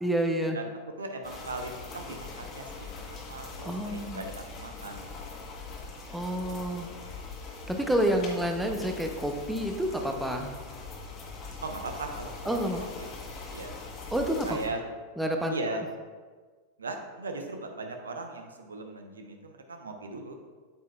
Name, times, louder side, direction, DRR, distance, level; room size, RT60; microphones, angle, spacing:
voice 1, 0.0-0.6 3.6-4.2 6.1-6.9 7.7-10.6 12.4-12.8 14.1-14.6 15.2-15.5, right 1 dB, 5° right, 4 dB, 0.7 m, -29 dB
voice 2, 1.0-5.1 11.6-12.4 12.6-13.1 13.5-13.8 14.4-14.8 15.5-15.8 16.8-20.4, right 3 dB, 70° right, 4 dB, 0.7 m, -38 dB
sound 1, 1.2-14.7, left 4 dB, 30° left, 1.2 m, -42 dB
8.6 x 8.2 x 2.3 m, 1.5 s
figure-of-eight pair, 90°, 0 cm